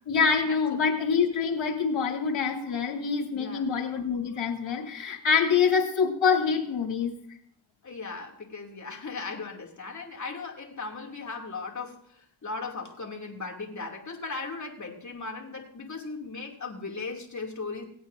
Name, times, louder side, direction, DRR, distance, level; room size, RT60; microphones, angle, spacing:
voice 1, 0.1-7.1, left 6 dB, 70° left, 1 dB, 2.6 m, -25 dB
voice 2, 3.3-3.7 7.8-17.8, left 4 dB, 35° left, 0 dB, 2.6 m, -37 dB
19.0 x 8.8 x 2.6 m, 0.66 s
cardioid pair, 70°, 48 cm